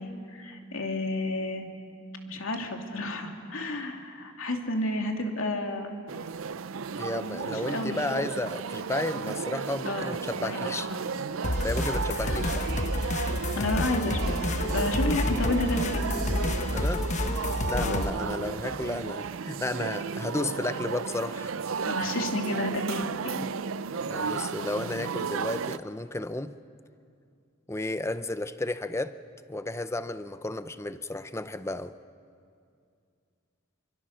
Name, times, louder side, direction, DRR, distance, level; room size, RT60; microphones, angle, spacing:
voice 1, 0.0-1.7 2.3-5.9 7.4-8.0 9.9-11.0 12.2-12.4 13.5-16.1 17.8-18.1 21.8-23.4, left 1 dB, 80° left, 2.6 m, -31 dB
sound 1, 6.1-25.8, right 5 dB, 80° right, 0.6 m, -34 dB
voice 2, 6.9-10.9 11.4-12.7 16.7-17.1 17.6-21.5 23.9-26.6 27.7-29.2 29.5-32.0, left 2 dB, 15° left, 0.6 m, -33 dB
sound 2, 11.4-18.1, left 1 dB, 35° left, 1.0 m, -29 dB
27.5 x 24.0 x 6.5 m
head